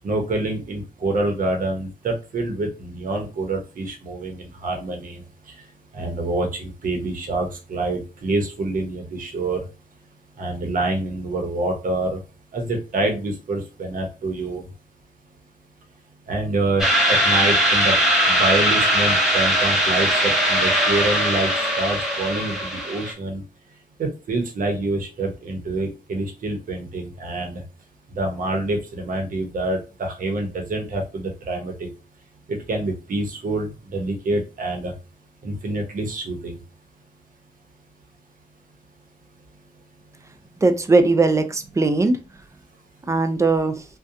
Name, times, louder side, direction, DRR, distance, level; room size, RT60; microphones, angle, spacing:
voice 1, 0.0-5.2 5.9-9.6 10.4-12.2 12.5-14.6 16.3-18.0 18.3-23.4 24.0-27.6 28.2-31.9 32.5-34.9 35.4-36.6, right 2 dB, 65° right, 2 dB, 0.8 m, -26 dB
sound 1, 16.8-23.1, equal, 5° right, 0.8 m, -20 dB
voice 2, 40.6-42.2 43.1-43.8, right 3 dB, 20° right, 8 dB, 0.4 m, -19 dB
2.7 x 2.2 x 2.5 m, 0.31 s
cardioid pair, 100°, 15 cm